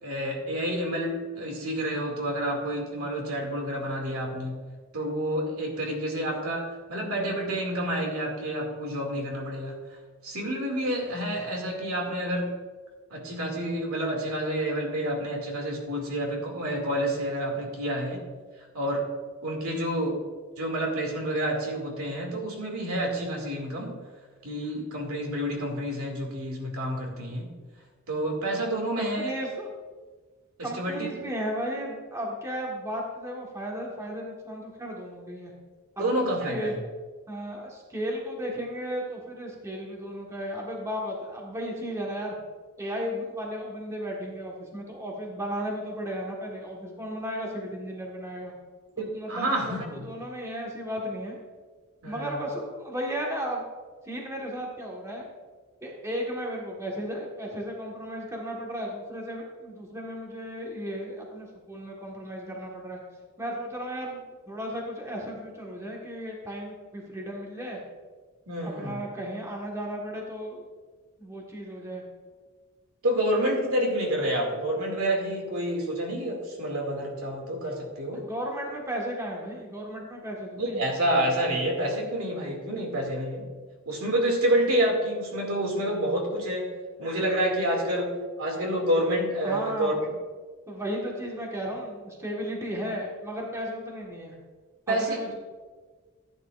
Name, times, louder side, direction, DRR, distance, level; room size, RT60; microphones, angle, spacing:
voice 1, 0.0-4.6 4.9-6.6 6.9-9.8 10.2-12.6 13.1-18.2 18.7-19.1 19.4-20.2 20.6-24.0 24.4-27.5 28.1-29.4 30.6-31.3 36.0-36.8 49.0-50.1 52.0-52.4 68.5-69.0 73.0-78.2 80.6-83.5 83.9-86.7 87.0-89.9 94.9-95.3, right 1 dB, 85° right, 0 dB, 2.4 m, -28 dB
voice 2, 29.0-29.7 30.6-35.5 36.0-36.7 37.3-42.3 42.8-48.5 49.0-51.4 52.0-53.6 54.0-55.3 55.8-63.0 63.4-67.8 68.6-70.7 71.2-72.0 78.1-80.9 89.4-90.1 90.7-94.3 94.9-95.4, equal, 15° right, -2 dB, 1.5 m, -35 dB
14.5 x 9.5 x 2.5 m, 1.4 s
head